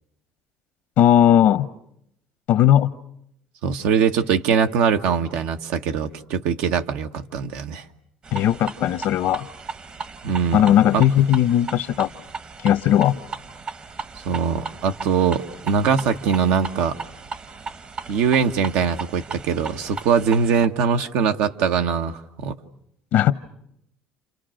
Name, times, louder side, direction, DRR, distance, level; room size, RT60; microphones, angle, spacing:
voice 1, 1.0-1.7 2.5-2.9 8.3-9.5 10.5-12.1 12.6-13.1 23.1-23.3, left 11 dB, 70° left, 12 dB, 0.9 m, -17 dB
voice 2, 3.6-7.8 10.2-10.6 10.9-11.0 14.2-17.0 18.1-22.6, right 6 dB, 80° right, 6 dB, 1.3 m, -22 dB
sound 1, 8.2-20.7, right 4 dB, 30° right, 1.0 m, -36 dB
29.5 x 28.0 x 6.5 m, 0.77 s
cardioid pair, 115°, 3 cm